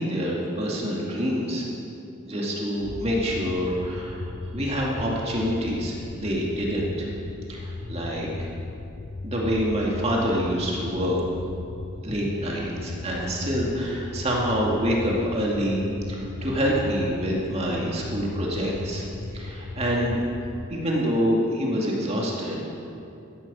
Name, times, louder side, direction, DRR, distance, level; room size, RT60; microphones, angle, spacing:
voice 1, 0.0-1.6 2.2-4.2 4.5-7.1 7.5-8.5 9.2-11.2 12.0-19.1 19.3-20.2 20.7-22.6, equal, 30° right, -3 dB, 2.2 m, -26 dB
sound 1, 2.8-20.8, left 2 dB, 25° left, 0.4 m, -36 dB
17.5 x 13.0 x 5.6 m, 2.7 s
head